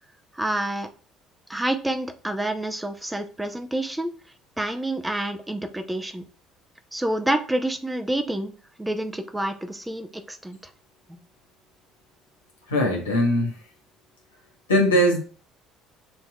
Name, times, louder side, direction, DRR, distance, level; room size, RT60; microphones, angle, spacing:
voice 1, 0.3-0.9 1.5-4.1 4.6-6.2 6.9-8.5 8.8-10.6 11.1-11.2, right 1 dB, 10° right, 7 dB, 0.7 m, -28 dB
voice 2, 12.7-13.5 14.7-15.2, equal, 80° left, 0 dB, 1.1 m, -20 dB
6.6 x 3.0 x 2.3 m, 0.41 s
figure-of-eight pair, 55°, 0 cm